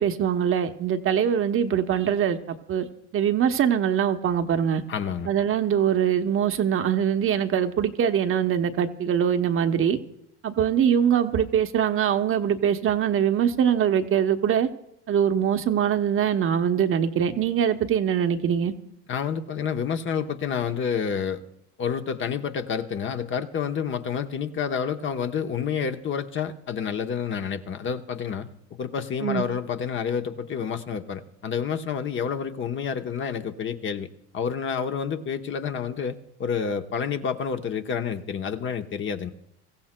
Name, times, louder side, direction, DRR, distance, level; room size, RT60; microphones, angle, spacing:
voice 1, 0.0-2.8 3.1-4.8 5.3-10.0 10.4-14.7 15.1-18.7 29.2-29.4, right 8 dB, 40° right, 7 dB, 0.9 m, -23 dB
voice 2, 4.9-5.3 19.1-21.4 21.8-28.5 28.8-34.1 34.3-39.3, left 7 dB, 35° left, 6 dB, 0.9 m, -29 dB
24.5 x 15.0 x 2.2 m, 0.77 s
supercardioid pair, 105°, 34 cm